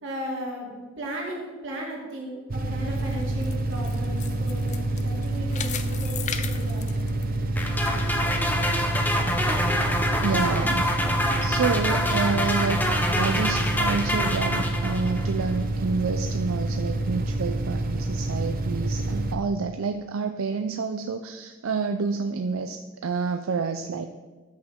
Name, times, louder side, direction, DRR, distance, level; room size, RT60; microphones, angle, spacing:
voice 1, 0.0-4.7 5.0-6.8, equal, 65° right, -2 dB, 2.6 m, -35 dB
sound 1, 2.5-19.3, right 2 dB, 45° right, 0.8 m, -28 dB
sound 2, 2.9-7.9 8.3-8.4 9.0-9.1, left 8 dB, 35° left, 0.5 m, -37 dB
sound 3, 7.6-15.3, left 1 dB, 10° left, 0.8 m, -26 dB
voice 2, 10.2-10.9 11.4-12.8 13.2-24.1, right 5 dB, 90° right, 7 dB, 0.5 m, -28 dB
13.0 x 6.4 x 3.6 m, 1.3 s
head